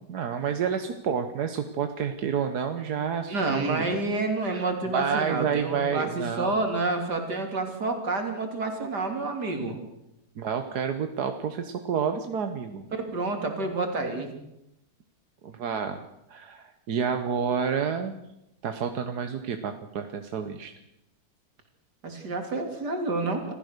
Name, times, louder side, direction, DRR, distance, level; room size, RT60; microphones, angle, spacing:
voice 1, 0.1-3.9 4.5-4.6 4.9-6.5 10.4-12.8 15.4-16.0 16.3-18.2 18.6-20.7, right 7 dB, 75° right, 7 dB, 1.6 m, -29 dB
voice 2, 3.3-9.8 13.0-14.3 22.0-23.5, right 3 dB, 90° right, 4 dB, 3.7 m, -29 dB
26.5 x 15.5 x 6.7 m, 0.86 s
omnidirectional pair, 1.7 m